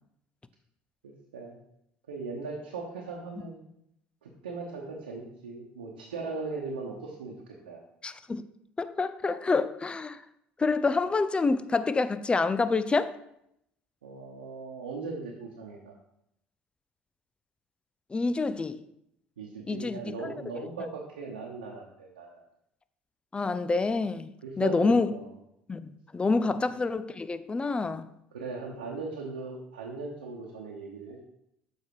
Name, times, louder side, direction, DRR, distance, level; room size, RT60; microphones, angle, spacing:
voice 1, 1.0-1.6 2.1-3.6 4.2-7.3 7.6-7.8 14.0-15.9 19.4-22.4 24.4-25.3 26.4-26.6 28.3-31.2, right 4 dB, 90° right, 1.0 m, -39 dB
voice 2, 8.0-8.4 8.8-10.2 10.6-13.1 18.1-18.8 19.7-20.3 23.3-24.3 24.6-25.1 25.7-28.1, left 3 dB, 20° left, 0.5 m, -27 dB
7.0 x 4.7 x 4.8 m
hypercardioid pair, 65°, 5 cm